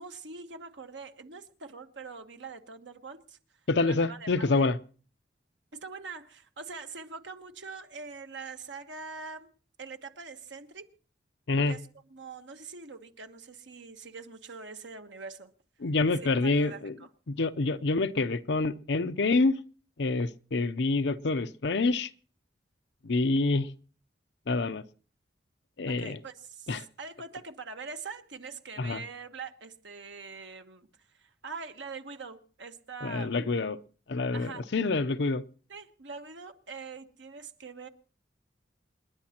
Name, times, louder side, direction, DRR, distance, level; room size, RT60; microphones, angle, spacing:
voice 1, 0.0-3.4 3.8-4.7 5.7-9.5 9.8-10.9 11.7-11.8 12.1-15.5 16.2-17.1 25.9-30.9 31.2-33.4 34.3-34.6 35.7-37.9, right 4 dB, 85° right, 1.3 m, -43 dB
voice 2, 3.7-4.8 11.5-11.8 15.8-17.0 17.3-19.6 20.0-22.1 23.0-23.7 24.5-24.8 25.8-26.2 26.7-26.8 28.8-29.0 33.0-33.8 34.1-35.4, left 3 dB, 70° left, 0.6 m, -27 dB
28.5 x 10.5 x 2.9 m
head